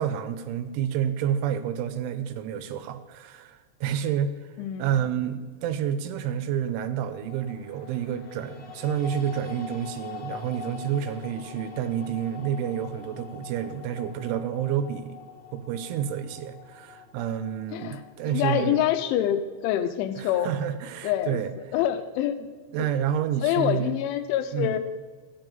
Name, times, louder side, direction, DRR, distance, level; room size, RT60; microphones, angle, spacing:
voice 1, 0.0-4.5 4.8-15.2 15.5-18.8 20.2-21.5 22.7-24.0 24.5-24.8, right 9 dB, 80° right, 10 dB, 3.1 m, -29 dB
voice 2, 4.6-5.0 17.7-18.0 18.3-20.5 21.0-21.4 21.7-22.4 23.4-24.8, left 11 dB, 85° left, 10 dB, 3.0 m, -26 dB
sound 1, 7.0-19.2, left 6 dB, 45° left, 2.4 m, -44 dB
14.0 x 9.8 x 3.9 m, 1.5 s
omnidirectional pair, 5.6 m